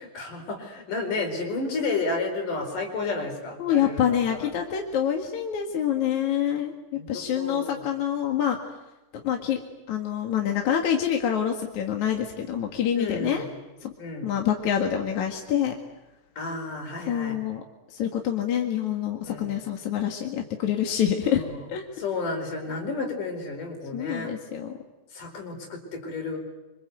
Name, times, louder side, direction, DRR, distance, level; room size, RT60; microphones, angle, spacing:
voice 1, 0.0-4.4 6.9-7.8 12.9-13.5 14.0-14.3 16.4-17.4 19.2-19.5 21.3-21.6 22.0-24.3 25.1-26.4, left 3 dB, 80° left, 3 dB, 6.2 m, -32 dB
voice 2, 3.6-6.7 7.1-8.6 9.2-9.6 9.9-13.5 13.8-13.9 14.2-15.7 17.1-17.6 17.9-21.8 23.9-24.8, left 9 dB, 65° left, 2 dB, 3.1 m, -26 dB
26.0 x 26.0 x 8.1 m, 1.0 s
omnidirectional pair, 3.7 m